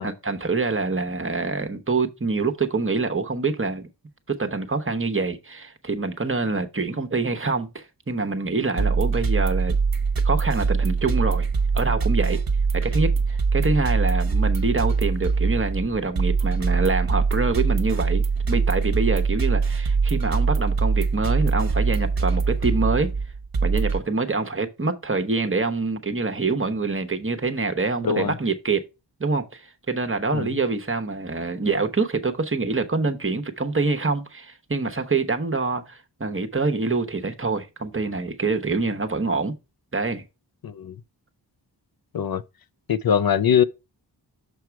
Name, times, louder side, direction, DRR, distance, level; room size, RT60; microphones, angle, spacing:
voice 1, 0.0-3.9 4.3-9.8 10.2-11.5 11.7-12.4 12.7-23.1 23.6-28.8 29.2-39.6 39.9-40.2, right 3 dB, 30° right, 1.0 m, -25 dB
sound 1, 8.8-24.0, right 4 dB, 55° right, 1.0 m, -23 dB
voice 2, 40.6-40.9 42.1-42.4 42.9-43.6, left 8 dB, 55° left, 0.5 m, -22 dB
7.0 x 4.6 x 4.6 m
wide cardioid pair, 60°, 43 cm